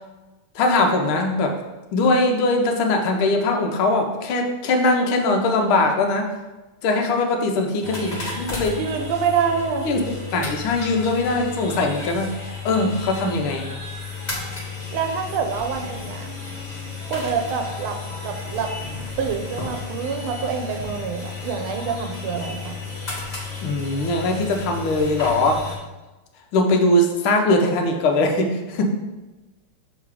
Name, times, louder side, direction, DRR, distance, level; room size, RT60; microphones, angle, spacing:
voice 1, 0.5-1.6 1.9-6.3 6.8-8.8 9.8-10.0 10.3-12.3 12.6-13.7 23.6-25.7 26.5-28.8, left 2 dB, 80° left, 3 dB, 1.6 m, -21 dB
sound 1, 7.8-25.8, left 4 dB, 30° left, 0.7 m, -33 dB
voice 2, 8.8-9.9 14.9-16.3 17.1-18.0 18.2-18.9 19.2-22.8, right 6 dB, 85° right, 4 dB, 1.5 m, -26 dB
6.2 x 3.7 x 4.8 m, 1.1 s
omnidirectional pair, 2.3 m